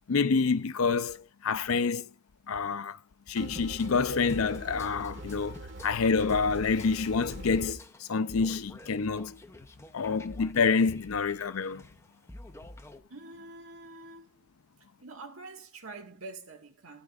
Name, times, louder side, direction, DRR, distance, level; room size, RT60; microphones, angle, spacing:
voice 1, 0.1-1.2 1.4-2.1 2.5-3.0 3.3-5.6 5.8-7.8 8.1-9.4 9.9-11.8, left 5 dB, 85° left, 0.5 m, -27 dB
sound 1, 3.4-7.7, right 2 dB, 60° right, 1.6 m, -44 dB
sound 2, 3.5-13.0, left 1 dB, 15° left, 0.7 m, -48 dB
voice 2, 13.1-14.5 15.0-17.0, right 3 dB, 80° right, 1.8 m, -46 dB
13.0 x 10.0 x 2.5 m
head